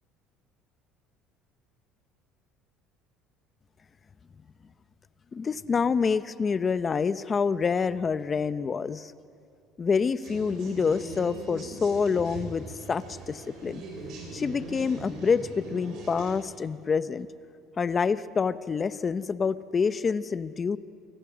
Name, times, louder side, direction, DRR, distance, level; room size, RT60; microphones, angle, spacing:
voice 1, 5.3-9.1 9.8-13.8 14.3-17.3 17.8-20.8, left 5 dB, 25° left, 14 dB, 0.7 m, -27 dB
sound 1, 10.2-16.3, right 3 dB, 60° right, 6.2 m, -41 dB
29.0 x 24.0 x 6.2 m, 2.7 s
cardioid pair, 150°, 0 cm